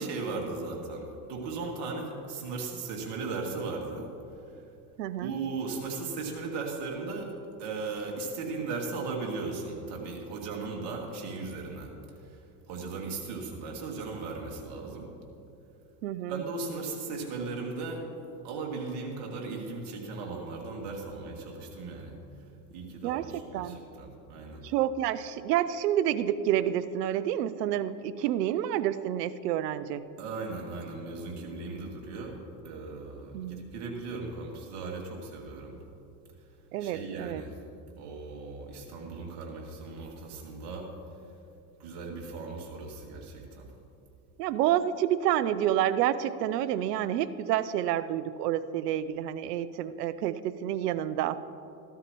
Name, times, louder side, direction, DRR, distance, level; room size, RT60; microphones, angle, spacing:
voice 1, 0.0-4.1 5.2-7.3 7.6-11.9 12.3-12.4 12.7-15.1 16.3-18.0 18.4-22.2 22.7-24.6 30.2-32.4 32.6-35.8 36.8-37.5 38.0-40.9 41.8-43.7, right 3 dB, 65° right, 0 dB, 2.5 m, -37 dB
voice 2, 5.0-5.4 16.0-16.4 23.0-23.8 24.6-30.0 33.3-33.7 36.7-37.4 44.4-51.4, right 11 dB, 85° right, 15 dB, 0.6 m, -29 dB
14.0 x 13.0 x 3.0 m, 2.7 s
hypercardioid pair, 85°, 47 cm